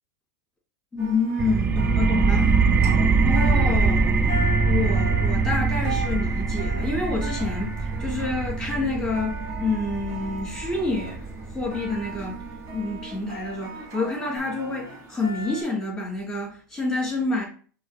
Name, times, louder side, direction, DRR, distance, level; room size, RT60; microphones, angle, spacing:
voice 1, 0.9-2.4 3.2-4.2 4.6-12.4 12.7-17.5, left 3 dB, 5° left, 2.0 m, -28 dB
sound 1, 1.0-15.6, right 2 dB, 50° right, 2.0 m, -37 dB
sound 2, 1.4-12.8, right 4 dB, 15° right, 0.4 m, -23 dB
5.6 x 3.0 x 2.8 m
supercardioid pair, 125°, 10 cm